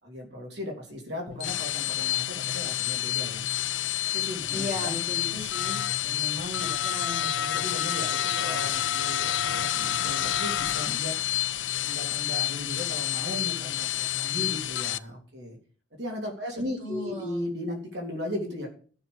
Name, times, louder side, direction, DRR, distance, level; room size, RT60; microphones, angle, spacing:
voice 1, 0.0-3.4 4.1-5.0 6.0-6.8 7.2-11.2 11.8-15.6 15.9-18.7, left 1 dB, 65° right, 0 dB, 3.4 m, -37 dB
sound 1, 1.3-15.0, left 12 dB, 85° left, 0.5 m, -29 dB
voice 2, 4.5-5.8 6.8-7.4 16.8-17.4, left 2 dB, 45° right, -1 dB, 3.1 m, -36 dB
13.0 x 6.2 x 6.8 m, 0.42 s
head